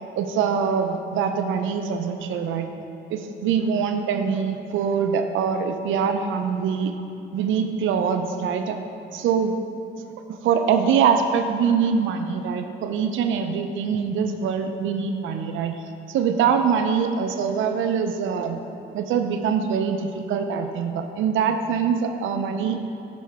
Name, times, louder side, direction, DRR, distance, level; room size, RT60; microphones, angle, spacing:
voice 1, 0.2-2.7 3.1-7.0 7.3-8.8 9.1-9.5 10.3-15.8 16.1-18.6 18.9-22.8, right 6 dB, 80° right, 6 dB, 0.5 m, -23 dB
6.4 x 6.0 x 3.4 m, 2.9 s
cardioid pair, 90°, 20 cm